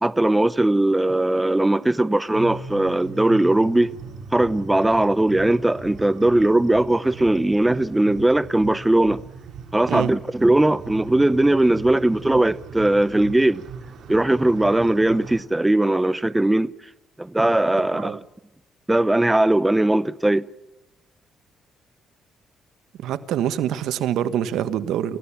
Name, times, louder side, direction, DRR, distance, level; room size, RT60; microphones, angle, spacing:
voice 1, 0.0-3.9 4.3-9.2 9.7-13.6 14.1-16.7 17.2-18.2 18.9-20.5, right 1 dB, 10° right, 0.7 m, -19 dB
sound 1, 2.3-15.4, right 5 dB, 65° right, 4.3 m, -38 dB
voice 2, 23.0-25.2, right 10 dB, 85° right, 1.3 m, -25 dB
29.5 x 15.5 x 7.2 m
cardioid pair, 90°, 0 cm